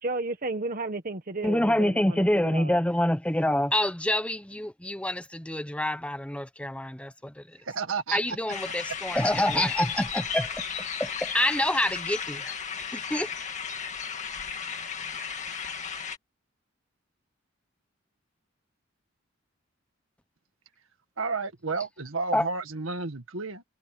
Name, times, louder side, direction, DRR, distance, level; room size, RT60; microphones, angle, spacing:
voice 1, 0.0-2.8, right 2 dB, 45° right, 1.4 m, -33 dB
voice 2, 1.4-7.6 8.1-10.6 11.0-12.5 12.9-13.3 22.3-22.5, left 1 dB, 5° left, 0.9 m, -27 dB
voice 3, 7.6-8.2 21.2-23.6, right 4 dB, 90° right, 1.9 m, -31 dB
sound 1, 8.5-16.2, left 6 dB, 35° left, 2.2 m, -34 dB
head